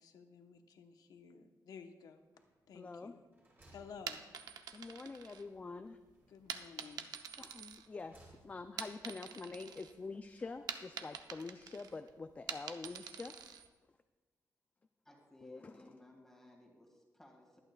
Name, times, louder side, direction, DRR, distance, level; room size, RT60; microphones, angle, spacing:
voice 1, 0.0-2.2 2.7-3.3 3.7-4.3 6.3-7.1, left 6 dB, 70° left, 6 dB, 1.0 m, -54 dB
sound 1, 2.3-2.8 3.1-4.8 6.0-6.9 7.6-8.8, right 2 dB, 35° right, 3.4 m, -65 dB
voice 2, 2.7-3.1 4.7-6.0 7.4-8.2 8.4-13.3 15.4-15.7, left 3 dB, 20° left, 8 dB, 0.4 m, -46 dB
sound 2, 3.9-5.9 6.5-8.3 8.6-9.9 10.3-13.7, right 7 dB, 80° right, 0.7 m, -46 dB
voice 3, 15.0-17.6, left 1 dB, 5° left, -1 dB, 1.9 m, -60 dB
22.5 x 8.9 x 2.3 m, 1.3 s
wide cardioid pair, 145°, 7 cm